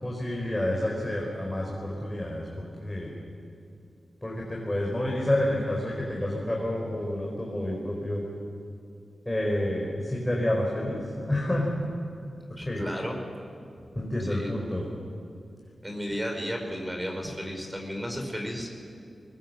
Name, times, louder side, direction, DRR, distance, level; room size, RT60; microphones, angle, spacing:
voice 1, 0.0-3.1 4.2-8.2 9.3-11.7 12.6-12.8 14.0-14.9, left 1 dB, 15° left, -2 dB, 4.3 m, -29 dB
voice 2, 12.6-13.2 14.2-14.5 15.8-18.7, equal, 10° right, 2 dB, 4.8 m, -33 dB
22.0 x 20.5 x 7.7 m, 2.4 s
cardioid pair, 65°, 0 cm